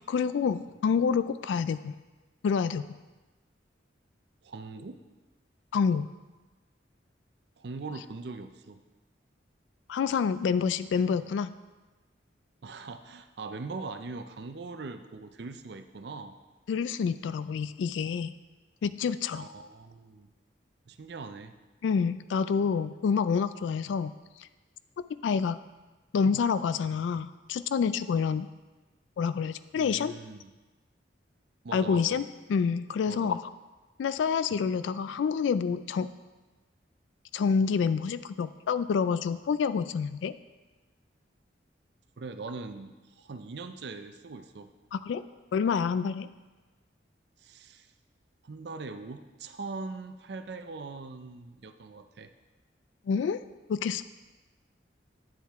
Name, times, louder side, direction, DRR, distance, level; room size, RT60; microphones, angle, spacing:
voice 1, 0.1-1.9 2.4-2.9 5.7-6.1 9.9-11.5 16.7-18.3 18.8-19.5 21.8-24.1 25.2-25.6 26.1-28.5 29.2-30.1 31.7-33.4 34.0-36.1 37.3-40.3 44.9-45.2 45.5-46.3 53.1-53.4 53.7-54.0, left 6 dB, 80° left, 14 dB, 0.3 m, -27 dB
voice 2, 4.4-5.0 7.6-8.8 12.6-16.4 19.3-20.3 20.9-21.5 29.8-30.5 31.6-32.2 33.1-33.4 42.2-44.7 47.4-47.9 48.4-52.3, right 3 dB, 65° right, 9 dB, 0.5 m, -41 dB
9.1 x 7.3 x 3.5 m, 1.2 s
head